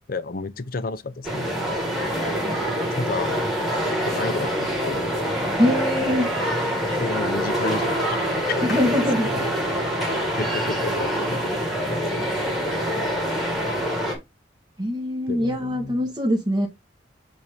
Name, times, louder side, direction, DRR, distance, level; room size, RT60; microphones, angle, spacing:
voice 1, 0.1-1.6 2.9-3.4 3.9-5.1 7.0-9.5 10.2-12.3 15.3-16.0, left 3 dB, 50° left, 0.6 m, -32 dB
sound 1, 1.2-14.2, equal, ahead, 1.7 m, -25 dB
voice 2, 5.6-6.3 8.6-9.5 14.8-16.7, left 1 dB, 25° right, 1.3 m, -23 dB
7.1 x 2.7 x 4.9 m
head